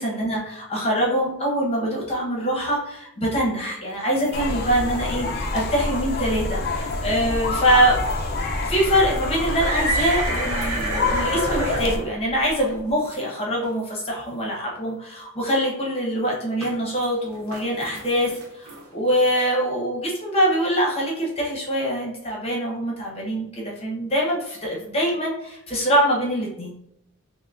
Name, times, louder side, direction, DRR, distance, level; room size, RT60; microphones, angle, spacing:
voice 1, 0.0-8.0 8.6-26.7, equal, 30° left, -2 dB, 0.9 m, -24 dB
sound 1, 3.9-4.3 4.7-4.9 5.5-5.7 6.1-6.2 6.7-7.0 8.0-8.1 8.7-8.8 9.1-13.4 13.6-13.7 14.5-14.6 16.6-17.1 17.3-19.4, right 2 dB, 90° right, 0.8 m, -30 dB
sound 2, 4.3-12.0, left 3 dB, 45° left, 0.4 m, -27 dB
5.7 x 2.1 x 2.4 m, 0.79 s
head